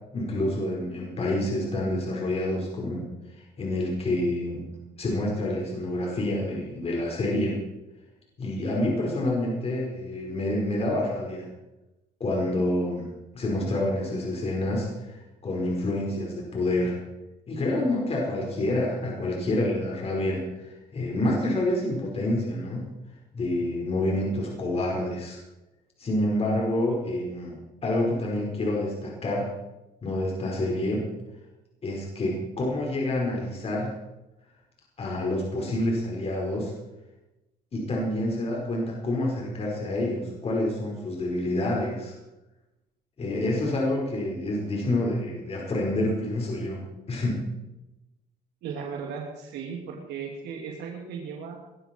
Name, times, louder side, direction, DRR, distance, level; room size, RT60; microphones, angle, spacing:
voice 1, 0.1-3.1 3.6-4.7 5.0-7.6 8.4-11.5 12.2-17.0 17.5-22.9 23.3-25.4 26.0-29.5 30.0-31.1 31.8-33.9 35.0-36.7 37.7-42.1 43.2-47.4, left 1 dB, 35° left, -2 dB, 5.2 m, -28 dB
voice 2, 48.6-51.6, right 6 dB, 80° right, 0 dB, 2.7 m, -36 dB
21.5 x 13.0 x 4.7 m, 0.99 s
cardioid pair, 110°, 17 cm